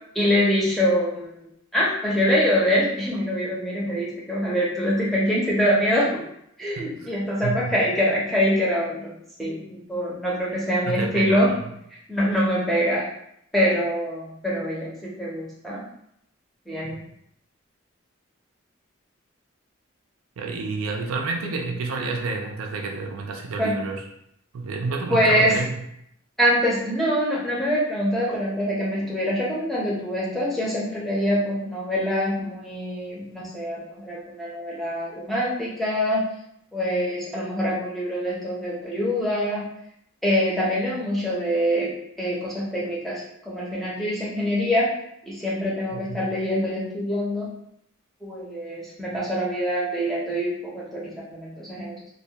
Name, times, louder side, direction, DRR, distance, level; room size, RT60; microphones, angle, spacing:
voice 1, 0.1-6.2 6.6-9.1 9.4-11.5 11.9-13.1 13.5-14.9 15.2-15.8 16.7-17.0 23.6-23.8 25.1-25.6 26.4-36.2 36.7-39.7 40.2-41.9 42.2-44.9 45.3-47.5 48.2-51.9, equal, ahead, -6 dB, 0.5 m, -24 dB
voice 2, 6.8-7.1 7.4-7.7 10.5-11.6 20.4-24.0 24.5-25.8 45.9-46.3, right 3 dB, 85° right, 2 dB, 0.4 m, -29 dB
2.2 x 2.2 x 2.7 m, 0.73 s
head